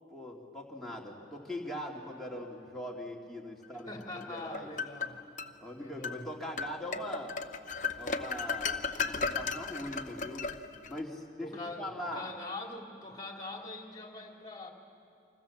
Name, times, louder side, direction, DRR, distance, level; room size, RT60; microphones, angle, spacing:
voice 1, 0.1-4.7 5.6-7.3 8.0-10.5 10.9-12.3, left 1 dB, ahead, -3 dB, 2.7 m, -41 dB
voice 2, 3.9-5.2 5.7-6.3 11.4-14.7, left 2 dB, 20° left, 2 dB, 2.7 m, -43 dB
sound 1, 4.2-5.5 6.0-6.2 6.6-11.0, left 5 dB, 40° left, 0.9 m, -35 dB
29.5 x 25.5 x 7.3 m, 2.5 s
head